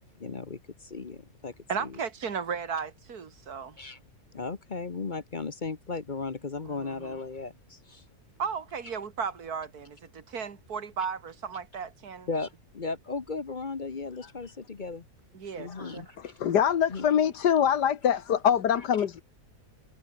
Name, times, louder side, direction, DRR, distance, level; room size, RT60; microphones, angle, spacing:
voice 1, 0.2-1.5 1.8-2.0 3.8-4.0 4.3-8.0 12.3-15.0 15.6-16.3 16.9-17.1, left 4 dB, 35° left, 1.0 m, -36 dB
voice 2, 1.7-3.8 6.6-7.2 8.4-12.3 15.3-16.1, right 6 dB, 65° right, 2.4 m, -35 dB
voice 3, 16.4-18.2 18.4-19.2, left 9 dB, 90° left, 1.9 m, -23 dB
omnidirectional pair, 1.7 m